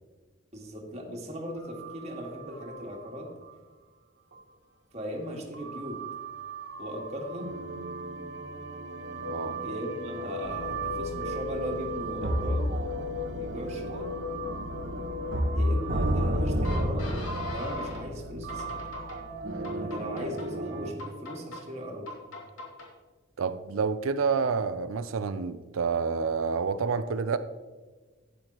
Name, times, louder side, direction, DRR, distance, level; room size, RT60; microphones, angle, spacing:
voice 1, 0.5-3.3 4.9-6.0 6.8-7.5 9.6-12.7 13.3-14.1 15.6-18.8 19.7-22.1, equal, 35° right, -1 dB, 1.8 m, -38 dB
sound 1, 1.6-3.2 3.4-3.5 4.3-4.4 5.5-20.9, right 1 dB, 60° right, 1.1 m, -33 dB
sound 2, 9.0-18.0 18.5-19.2 19.6-20.5 21.0-21.6 22.1-22.9, left 5 dB, 90° left, 2.4 m, -39 dB
voice 2, 23.4-27.4, right 5 dB, 85° right, 11 dB, 0.5 m, -28 dB
12.0 x 9.5 x 3.0 m, 1.3 s
head